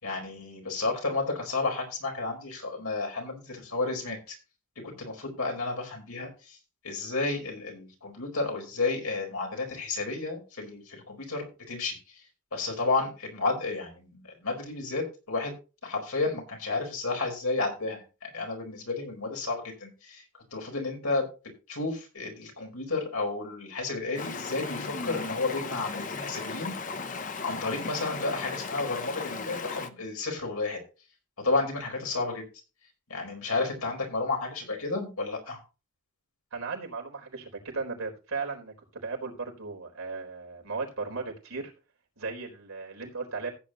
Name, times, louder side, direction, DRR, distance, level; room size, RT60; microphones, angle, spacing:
voice 1, 0.0-4.4 5.0-6.6 6.8-12.0 12.5-15.5 15.8-20.2 20.5-21.3 21.7-26.7 27.4-30.8 31.4-32.4 33.1-35.6, left 3 dB, 85° left, 2 dB, 4.6 m, -32 dB
Stream, 24.1-29.9, left 4 dB, 35° left, 0.8 m, -36 dB
voice 2, 36.5-41.7 42.2-43.5, right 4 dB, 75° right, 0 dB, 4.1 m, -36 dB
15.5 x 8.4 x 2.9 m, 0.31 s
head